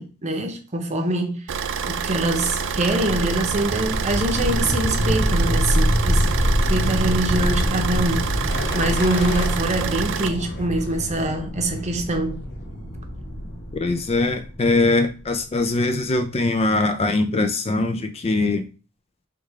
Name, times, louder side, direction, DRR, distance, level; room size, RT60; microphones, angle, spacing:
voice 1, 0.0-1.5 2.0-6.3 6.7-12.4, right 1 dB, 35° right, 0.8 m, -24 dB
Car / Idling, 1.5-10.3, right 6 dB, 60° right, 0.4 m, -28 dB
sound 1, 2.4-15.4, equal, 85° left, 1.4 m, -25 dB
sound 2, 7.6-7.9 8.5-9.6 10.1-11.1 11.7-12.1, left 3 dB, 55° left, 0.7 m, -36 dB
voice 2, 13.7-18.7, left 2 dB, 30° left, 0.4 m, -22 dB
3.5 x 3.2 x 4.7 m
head